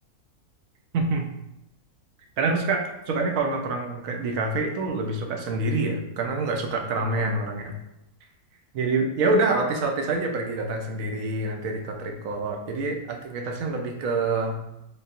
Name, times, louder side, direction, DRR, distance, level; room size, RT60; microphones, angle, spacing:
voice 1, 0.9-1.3 2.4-7.7 8.7-14.6, right 3 dB, 70° right, 2 dB, 1.0 m, -26 dB
4.4 x 3.4 x 2.5 m, 0.87 s
omnidirectional pair, 1.6 m